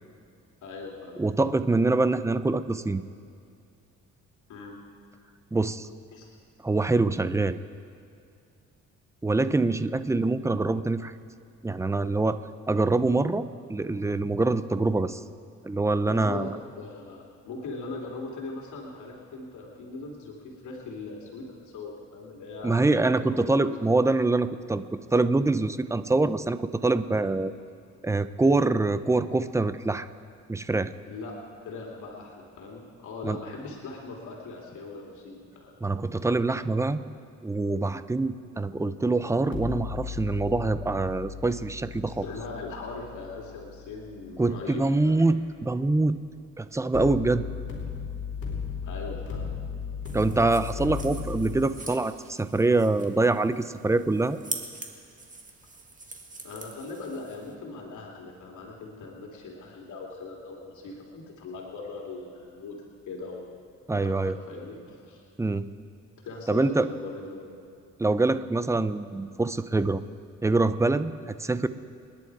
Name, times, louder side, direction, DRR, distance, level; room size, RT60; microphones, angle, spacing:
voice 1, 0.6-1.2 4.5-4.7 6.1-6.3 16.0-23.9 31.1-31.3 31.6-35.8 42.1-45.2 48.8-49.5 56.4-62.8 63.1-63.4 64.0-65.2 66.2-67.5, left 3 dB, 75° left, -1 dB, 2.8 m, -40 dB
voice 2, 1.2-3.0 5.5-5.9 6.6-7.6 9.2-11.1 11.6-12.4 12.7-15.2 15.6-16.5 22.6-24.8 25.1-27.5 28.0-30.1 30.5-30.9 33.2-33.4 35.8-37.0 37.4-42.3 44.4-46.2 46.6-47.4 50.1-54.4 63.9-64.3 65.4-65.7 66.5-66.9 68.0-70.0 70.4-71.7, right 2 dB, 10° right, 13 dB, 0.6 m, -25 dB
sound 1, 39.5-44.5 46.9-51.6, left 6 dB, 50° left, 4.7 m, -36 dB
sound 2, 50.0-57.5, right 3 dB, 25° right, 2.0 m, -43 dB
28.5 x 10.5 x 4.7 m, 2.4 s
cardioid pair, 90°, 30 cm